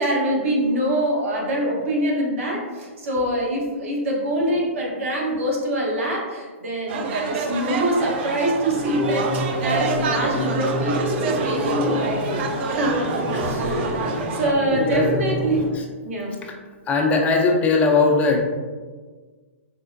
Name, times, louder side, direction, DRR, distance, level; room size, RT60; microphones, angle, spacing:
voice 1, 0.0-9.3 9.6-12.5 12.8-15.7 16.0-16.4, right 1 dB, 70° right, -2 dB, 1.0 m, -24 dB
sound 1, 6.9-14.5, right 4 dB, 50° right, 0.4 m, -28 dB
sound 2, 8.7-15.7, equal, 25° right, 0.8 m, -28 dB
voice 2, 14.7-15.2 15.7-15.8 16.4-16.5 16.9-18.4, left 3 dB, 20° left, 1 dB, 0.5 m, -20 dB
4.3 x 2.1 x 2.5 m, 1.5 s
hypercardioid pair, 125°, 7 cm